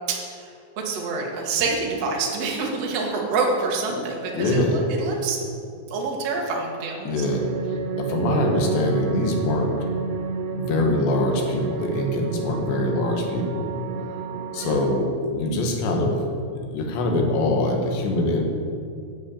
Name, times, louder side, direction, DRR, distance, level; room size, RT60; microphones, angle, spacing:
voice 1, 0.1-0.5 0.8-5.4 5.9-7.1 14.6-14.8, right 4 dB, 55° right, -2 dB, 1.8 m, -27 dB
voice 2, 4.3-4.8 7.0-7.5 8.0-9.8 10.5-13.7 14.5-16.2 16.6-18.4, left 2 dB, 70° left, 2 dB, 3.5 m, -23 dB
sound 1, 7.2-15.0, right 6 dB, 85° right, 3.4 m, -30 dB
11.0 x 6.3 x 8.8 m, 2.5 s
omnidirectional pair, 5.4 m